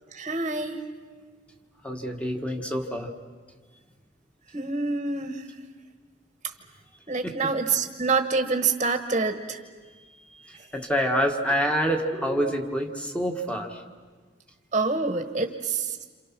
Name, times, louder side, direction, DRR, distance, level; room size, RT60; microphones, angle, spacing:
voice 1, 0.1-0.8 4.5-5.4 7.1-9.6 12.1-12.5 14.7-16.0, right 4 dB, 30° right, 6 dB, 1.3 m, -27 dB
voice 2, 1.8-3.1 7.2-7.5 10.3-13.8, equal, 5° left, 3 dB, 1.7 m, -27 dB
28.0 x 27.5 x 6.1 m, 1.4 s
head